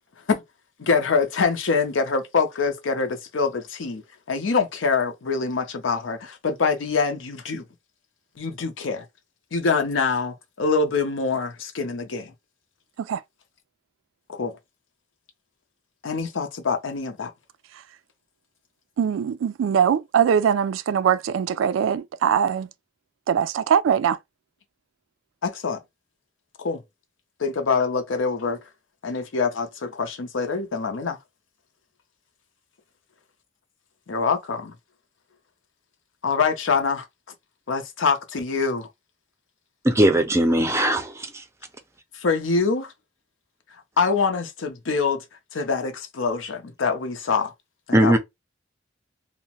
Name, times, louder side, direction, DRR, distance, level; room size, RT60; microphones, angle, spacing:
voice 1, 0.8-4.0 4.3-7.6 8.4-9.1 9.5-12.3 14.3-14.5 16.0-17.3 25.4-25.8 26.6-26.8 27.4-28.6 29.0-31.2 34.1-34.7 36.2-37.1 37.7-38.9 42.1-42.9 44.0-45.2 45.5-47.5 47.9-48.2, left 4 dB, 80° left, 0.6 m, -25 dB
voice 2, 19.0-22.7 23.3-24.2, right 8 dB, 85° right, 0.3 m, -21 dB
voice 3, 39.8-41.4 47.9-48.2, right 1 dB, 15° right, 0.4 m, -19 dB
2.8 x 2.0 x 2.8 m
head